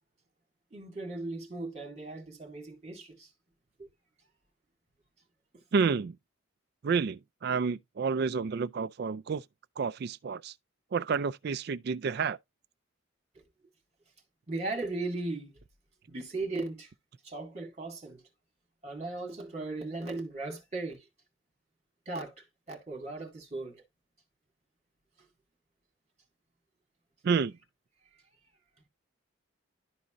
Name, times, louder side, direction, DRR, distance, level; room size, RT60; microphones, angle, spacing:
voice 1, 0.7-3.3 3.8-3.9 14.5-15.5 16.1-16.9 17.2-18.2 18.8-21.0 22.1-22.3 22.7-23.8, right 2 dB, 35° right, 2.3 m, -37 dB
voice 2, 5.7-6.2 6.8-9.4 9.8-10.5 10.9-12.4 27.2-27.5, right 5 dB, 50° right, 0.3 m, -29 dB
12.0 x 4.2 x 2.5 m
head